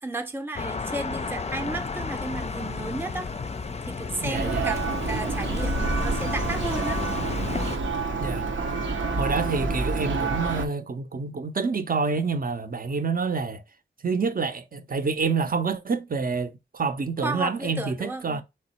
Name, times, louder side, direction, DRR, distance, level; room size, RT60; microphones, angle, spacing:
voice 1, 0.0-3.3 3.9-7.0 17.2-18.4, right 2 dB, 10° right, 0.7 m, -33 dB
sound 1, 0.5-7.8, left 4 dB, 35° left, 0.5 m, -32 dB
voice 2, 4.2-4.7 8.2-8.5 9.2-13.6 14.0-18.4, right 4 dB, 45° right, 0.7 m, -27 dB
Church bell, 4.3-10.6, right 3 dB, 75° right, 0.8 m, -28 dB
3.8 x 3.1 x 4.3 m
cardioid pair, 45°, 20 cm